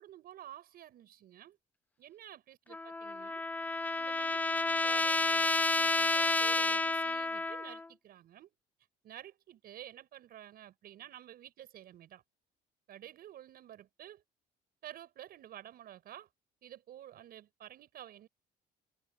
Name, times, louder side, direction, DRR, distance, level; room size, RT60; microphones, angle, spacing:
voice 1, 0.0-1.6 2.0-3.4 3.7-8.5 9.0-12.2 12.9-14.2 14.8-16.3 16.6-18.3, right 11 dB, 65° right, 5.8 m, -51 dB
Trumpet, 2.7-7.9, left 3 dB, 10° left, 0.3 m, -30 dB
cardioid pair, 110°, 17 cm